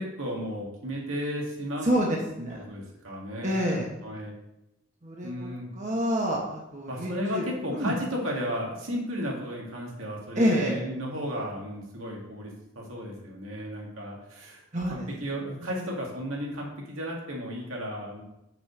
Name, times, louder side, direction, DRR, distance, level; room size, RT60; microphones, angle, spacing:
voice 1, 0.0-1.9 2.5-4.3 5.2-5.7 6.9-18.2, equal, 80° right, -2 dB, 2.0 m, -34 dB
voice 2, 1.8-2.7 3.4-3.9 5.0-5.5 5.7-7.5 7.7-8.0 10.3-10.7 14.7-15.1 15.6-15.7, equal, 35° right, -2 dB, 1.1 m, -27 dB
6.1 x 4.9 x 6.1 m, 0.88 s
head